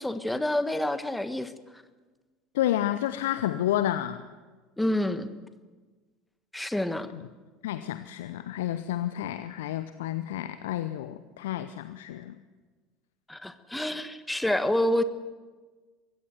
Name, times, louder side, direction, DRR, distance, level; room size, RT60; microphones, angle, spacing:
voice 1, 0.0-1.5 4.8-5.3 6.5-7.1 13.3-15.0, left 1 dB, 5° left, 11 dB, 1.5 m, -28 dB
voice 2, 2.5-4.2 7.1-7.2 7.6-12.4, left 12 dB, 70° left, 11 dB, 0.7 m, -30 dB
23.0 x 16.0 x 8.0 m, 1.3 s
figure-of-eight pair, 70°, 0 cm